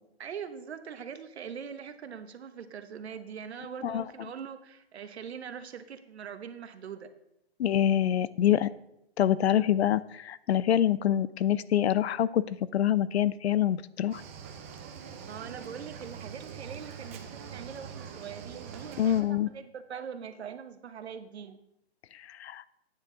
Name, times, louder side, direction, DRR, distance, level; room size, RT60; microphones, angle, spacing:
voice 1, 0.2-7.1 15.2-21.6, right 7 dB, 80° right, 9 dB, 1.1 m, -42 dB
voice 2, 7.6-8.7 9.2-14.2 19.0-19.5 22.3-22.6, left 11 dB, 80° left, 19 dB, 0.5 m, -26 dB
Cricket / Waves surf, 14.1-19.2, right 7 dB, 15° right, 0.4 m, -44 dB
9.7 x 8.2 x 3.8 m, 0.82 s
hypercardioid pair, 160°, 32 cm